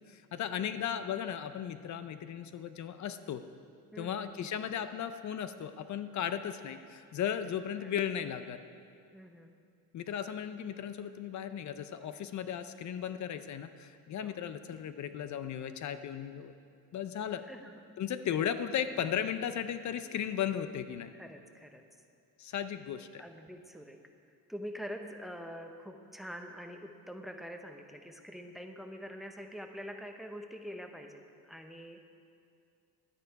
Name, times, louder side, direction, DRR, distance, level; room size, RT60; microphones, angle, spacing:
voice 1, 0.1-3.4 4.0-8.6 9.9-16.5 16.9-17.4 18.0-21.1 22.4-23.2, left 9 dB, 45° left, 11 dB, 0.6 m, -36 dB
voice 2, 3.9-4.3 7.4-7.5 7.8-8.0 9.1-9.5 14.1-14.4 17.4-17.8 21.1-21.8 23.2-24.0 24.5-32.0, equal, ahead, 5 dB, 0.8 m, -45 dB
11.5 x 9.6 x 4.7 m, 2.3 s
cardioid pair, 105°, 40 cm